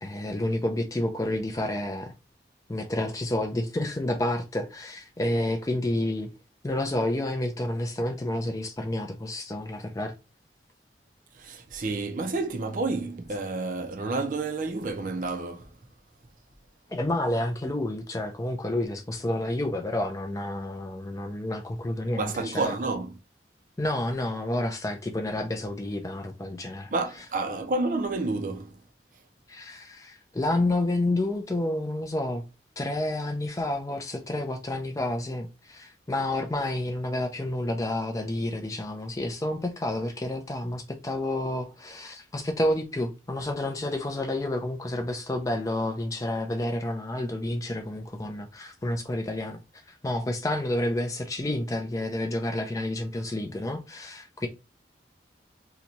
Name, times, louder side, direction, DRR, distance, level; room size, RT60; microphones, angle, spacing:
voice 1, 0.0-2.1 2.7-6.3 6.6-10.1 16.9-22.7 23.8-26.9 29.5-32.4 32.8-49.6 49.9-54.5, left 1 dB, 20° left, 0.4 m, -29 dB
voice 2, 11.4-15.7 22.2-23.2 26.9-28.8, right 3 dB, 45° right, 0.5 m, -30 dB
2.8 x 2.2 x 3.9 m
head